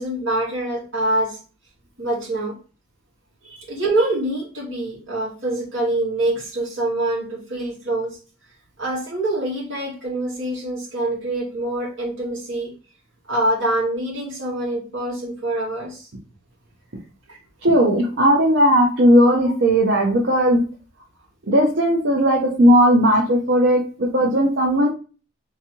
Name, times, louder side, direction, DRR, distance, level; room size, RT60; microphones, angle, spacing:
voice 1, 0.0-1.4 2.0-2.6 3.7-8.2 8.8-12.7 13.3-16.1 17.3-17.4, right 1 dB, 80° right, -4 dB, 1.9 m, -25 dB
voice 2, 17.6-20.6 21.5-24.9, equal, 65° right, -1 dB, 0.7 m, -16 dB
3.4 x 3.2 x 2.8 m, 0.35 s
head